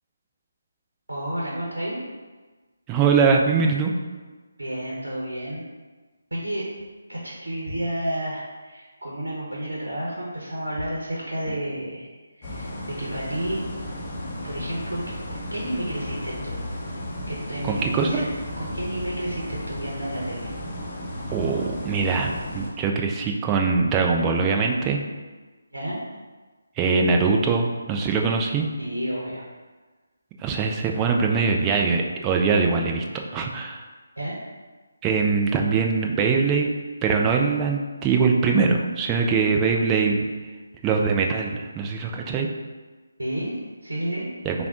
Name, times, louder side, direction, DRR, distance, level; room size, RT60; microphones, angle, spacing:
voice 1, 1.1-2.0 4.6-5.6 6.3-6.7 7.1-12.1 12.3-13.6 14.4-16.7 17.3-18.3 18.6-20.5 25.7-26.0 28.8-29.5 34.2-34.4 43.2-44.3, right 1 dB, 85° right, -4 dB, 0.8 m, -31 dB
voice 2, 2.9-4.0 17.6-18.1 21.3-25.0 26.8-28.7 30.4-33.0 33.3-33.8 35.0-36.7 37.0-40.3 40.8-42.5 44.5-44.6, right 5 dB, 15° right, 1 dB, 0.3 m, -22 dB
sound 1, 12.4-22.7, left 1 dB, 30° left, 0.7 m, -34 dB
3.4 x 2.4 x 3.6 m, 1.3 s
figure-of-eight pair, 150°, 0 cm